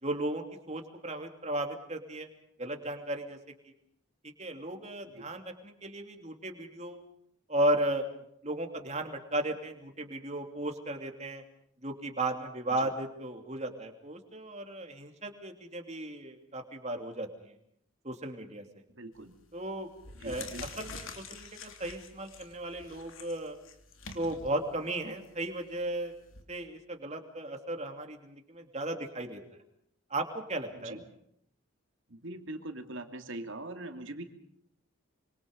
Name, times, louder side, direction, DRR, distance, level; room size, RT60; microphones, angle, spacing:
voice 1, 0.0-2.3 2.6-3.4 4.4-7.0 7.5-8.1 8.4-11.4 11.8-17.3 18.0-18.6 19.5-19.9 20.2-20.5 20.8-23.6 24.1-26.1 26.5-29.4 30.1-31.0, right 1 dB, 30° right, 5 dB, 2.9 m, -35 dB
voice 2, 18.9-19.4 20.1-20.8 30.7-31.0 32.1-34.2, right 2 dB, 60° right, 6 dB, 2.7 m, -42 dB
sound 1, 19.2-19.5 19.9-26.4, left 4 dB, 70° left, 3.2 m, -47 dB
26.0 x 25.5 x 5.3 m, 0.70 s
head